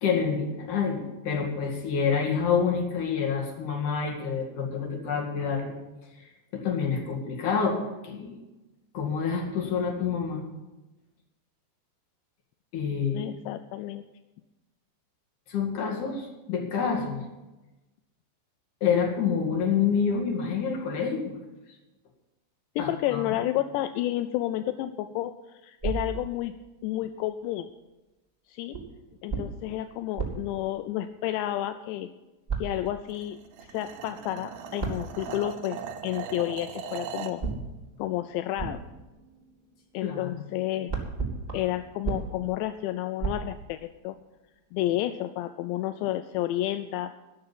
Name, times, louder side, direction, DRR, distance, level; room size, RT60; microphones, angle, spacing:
voice 1, 0.0-5.7 6.2-6.3 6.5-8.4 8.9-10.4 12.7-13.3 15.5-17.2 18.8-21.4 22.8-23.2 40.0-40.4, left 6 dB, 50° left, 0 dB, 3.5 m, -27 dB
voice 2, 13.1-14.0 22.8-26.5 26.8-27.7 28.5-28.8 29.2-32.1 32.6-37.4 38.0-38.8 39.9-40.9 41.5-44.2 44.7-47.1, left 14 dB, 85° left, 9 dB, 2.7 m, -31 dB
sound 1, 25.8-27.0 28.7-31.6 32.5-33.3 34.8-35.9 37.4-40.3 40.5-44.2, right 5 dB, 10° right, 1.7 m, -36 dB
sound 2, 33.1-37.4, right 7 dB, 75° right, 2.8 m, -39 dB
12.5 x 6.6 x 9.8 m, 1.1 s
omnidirectional pair, 5.0 m